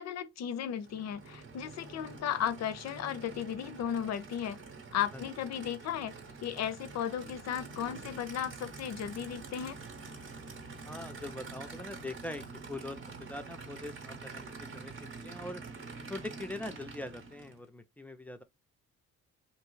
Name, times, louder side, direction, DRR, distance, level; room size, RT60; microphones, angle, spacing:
voice 1, 0.0-4.6 4.9-6.2 6.4-9.8, left 9 dB, 60° left, 0.5 m, -35 dB
Aircraft / Idling, 0.7-17.6, right 4 dB, 40° right, 0.8 m, -46 dB
voice 2, 10.9-13.0 13.3-14.9 15.2-15.6 16.1-18.4, left 2 dB, 5° left, 0.4 m, -42 dB
2.7 x 2.3 x 3.1 m
cardioid pair, 90°, 30 cm